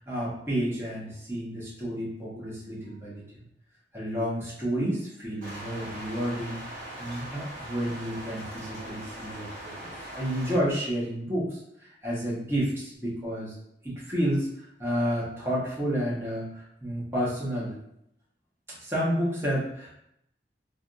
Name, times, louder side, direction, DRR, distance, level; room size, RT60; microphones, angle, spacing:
voice 1, 0.0-3.4 3.9-6.6 7.0-13.5 13.8-17.7 18.8-19.9, equal, 15° right, -7 dB, 1.0 m, -30 dB
sound 1, 5.4-10.6, right 1 dB, 50° right, 1.0 m, -41 dB
3.4 x 2.4 x 2.6 m, 0.77 s
head